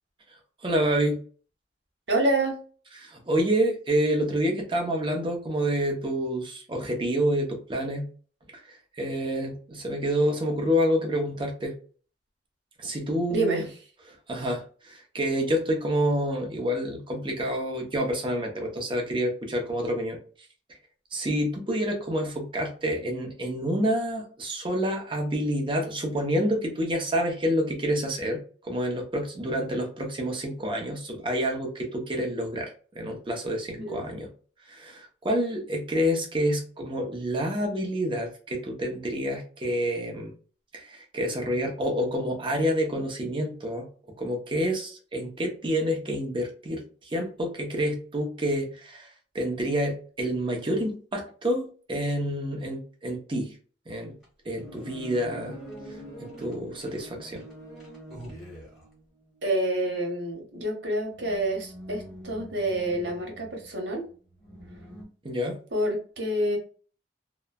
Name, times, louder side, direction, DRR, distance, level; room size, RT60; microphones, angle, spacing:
voice 1, 0.6-1.2 3.0-8.1 8.5-11.7 12.8-13.6 14.3-20.2 21.1-34.3 34.7-40.3 40.7-43.9 44.2-53.5 53.9-54.1 54.4-55.6 56.4-57.4 65.2-65.6, equal, 30° right, 2 dB, 0.7 m, -28 dB
voice 2, 2.1-2.6 13.3-13.6 33.7-34.1 59.4-64.1 65.7-66.6, right 1 dB, 80° right, 1 dB, 1.0 m, -27 dB
sound 1, 54.2-59.3 60.3-60.4 61.1-65.0, right 1 dB, ahead, 1.1 m, -44 dB
3.0 x 2.0 x 2.3 m, 0.40 s
head